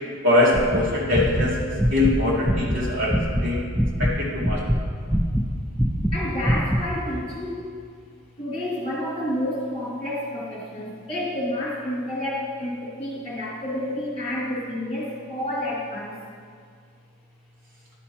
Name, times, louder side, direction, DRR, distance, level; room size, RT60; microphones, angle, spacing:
voice 1, 0.2-1.6 1.9-3.2 3.4-3.6 4.0-4.6, left 2 dB, 55° right, -5 dB, 2.0 m, -22 dB
sound 1, 0.5-3.5 3.7-6.2 6.4-6.8, equal, ahead, 0.5 m, -23 dB
voice 2, 6.1-7.7 8.4-16.2, left 1 dB, 30° left, -6 dB, 2.2 m, -29 dB
11.0 x 5.6 x 4.3 m, 2.1 s
head